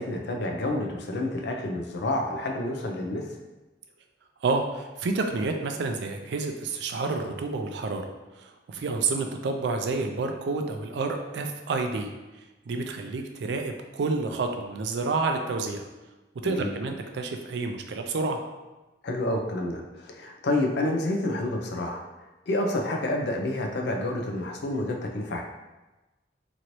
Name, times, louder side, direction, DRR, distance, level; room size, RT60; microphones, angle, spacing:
voice 1, 0.0-3.3 16.4-16.7 19.0-22.0 22.5-25.4, left 1 dB, 65° left, 2 dB, 0.5 m, -29 dB
voice 2, 4.4-8.1 8.3-12.1 12.4-15.9 16.4-18.4, right 3 dB, 70° right, 4 dB, 0.4 m, -29 dB
3.0 x 2.6 x 2.9 m, 1.1 s
head